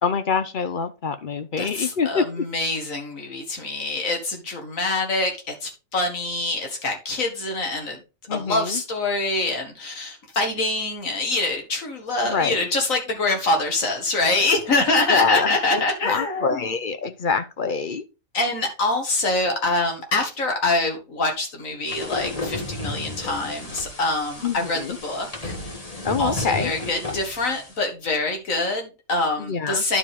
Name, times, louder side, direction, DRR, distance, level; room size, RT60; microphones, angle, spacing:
voice 1, 0.0-2.4 8.3-8.8 12.2-12.7 15.1-18.0 24.4-25.0 26.0-26.7 29.4-29.8, left 5 dB, 50° left, 0.7 m, -25 dB
voice 2, 1.6-8.0 8.3-16.7 18.3-25.6 26.2-30.0, left 2 dB, 70° left, 2.2 m, -25 dB
sound 1, 21.9-27.8, left 2 dB, 25° left, 1.5 m, -33 dB
11.0 x 4.8 x 3.5 m
omnidirectional pair, 1.4 m